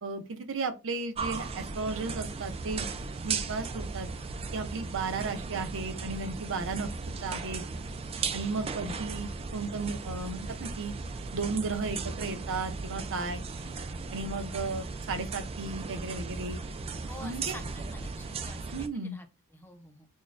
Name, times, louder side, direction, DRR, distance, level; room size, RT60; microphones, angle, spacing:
voice 1, 0.0-2.9 3.2-4.1 4.5-6.9 7.2-7.6 8.3-10.9 11.3-13.4 14.1-16.6 17.2-17.6 18.7-19.2, right 3 dB, 60° right, 0.6 m, -34 dB
sound 1, 1.2-18.9, right 4 dB, 25° right, 0.3 m, -37 dB
voice 2, 8.1-8.5 17.1-20.1, left 1 dB, 10° left, 0.7 m, -49 dB
6.2 x 2.2 x 2.5 m
head